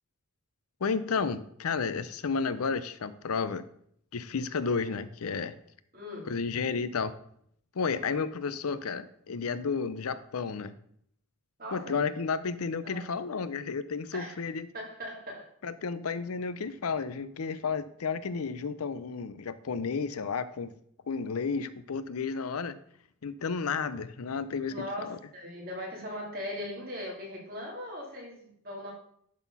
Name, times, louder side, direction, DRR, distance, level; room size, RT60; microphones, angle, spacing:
voice 1, 0.8-3.6 4.1-5.6 6.3-7.1 7.7-10.7 11.7-14.7 15.6-20.8 21.1-22.8 23.2-25.2, left 5 dB, 90° left, 14 dB, 0.6 m, -32 dB
voice 2, 5.9-6.3 11.6-12.0 12.8-13.1 14.1-14.4 14.7-15.5 24.7-28.9, left 1 dB, 45° right, -2 dB, 2.8 m, -39 dB
11.5 x 4.2 x 5.5 m, 0.68 s
head